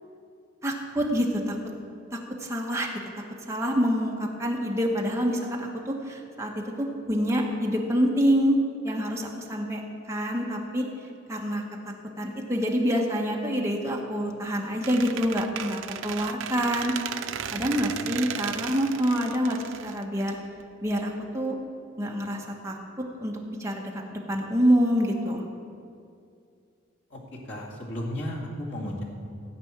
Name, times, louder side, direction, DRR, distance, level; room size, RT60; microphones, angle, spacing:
voice 1, 0.6-1.5 2.4-2.9 3.5-6.5 6.8-8.6 8.8-9.8 10.1-10.8 11.3-11.6 12.2-16.9 17.5-20.4 20.8-21.5 22.0-22.8 23.2-23.3 23.6-25.4, equal, 15° right, -1 dB, 1.5 m, -26 dB
Squeak, 14.8-20.6, right 8 dB, 70° right, 0.5 m, -35 dB
voice 2, 17.8-18.1 27.1-27.2 27.5-29.0, equal, 65° left, -4 dB, 2.4 m, -34 dB
16.0 x 5.4 x 9.0 m, 2.4 s
head